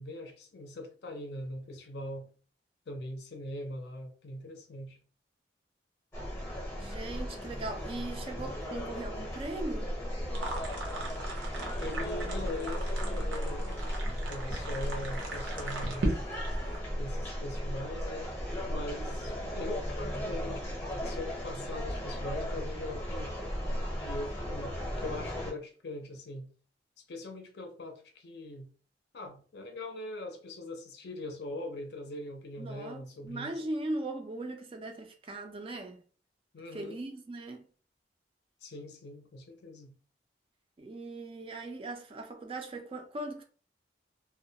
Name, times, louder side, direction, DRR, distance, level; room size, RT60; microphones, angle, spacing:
voice 1, 0.0-2.3 2.9-5.0 11.8-13.8 14.3-16.2 16.9-18.3 18.7-23.3 24.0-26.5 27.1-28.7 29.1-33.6 36.5-37.0 38.6-39.9, left 1 dB, 60° left, 0.5 m, -41 dB
sound 1, 6.1-25.5, equal, 15° left, 0.6 m, -36 dB
voice 2, 6.8-10.0 32.6-36.0 36.7-37.7 40.8-43.4, right 2 dB, 30° right, 0.3 m, -39 dB
sound 2, 10.3-16.8, right 2 dB, 90° right, 0.7 m, -38 dB
2.2 x 2.1 x 2.7 m
head